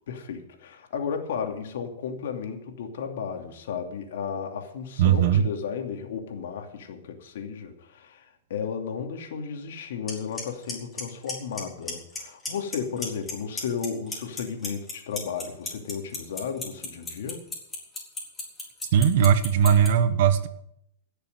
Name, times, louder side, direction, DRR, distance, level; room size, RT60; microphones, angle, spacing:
voice 1, 0.1-17.4, left 6 dB, 75° left, 4 dB, 2.7 m, -34 dB
voice 2, 5.0-5.5 18.9-20.5, right 8 dB, 60° right, 12 dB, 1.3 m, -19 dB
Clock, 10.1-10.2 10.4-10.7 11.0-11.6 11.9-12.2 12.5-13.3 13.6-19.9, left 3 dB, 10° left, 4.0 m, -32 dB
17.0 x 6.8 x 8.0 m, 0.75 s
supercardioid pair, 145°, 0 cm